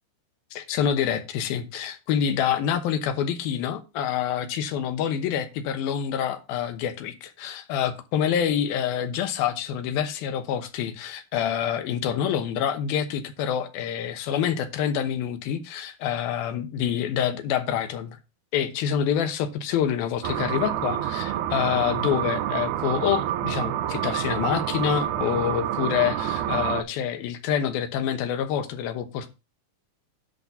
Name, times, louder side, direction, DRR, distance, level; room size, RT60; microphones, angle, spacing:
voice 1, 0.6-18.2 18.5-29.3, left 9 dB, 80° left, 9 dB, 2.8 m, -27 dB
sound 1, 20.2-26.8, right 11 dB, 75° right, 1.9 m, -28 dB
10.5 x 4.0 x 7.1 m, 0.27 s
omnidirectional pair, 4.3 m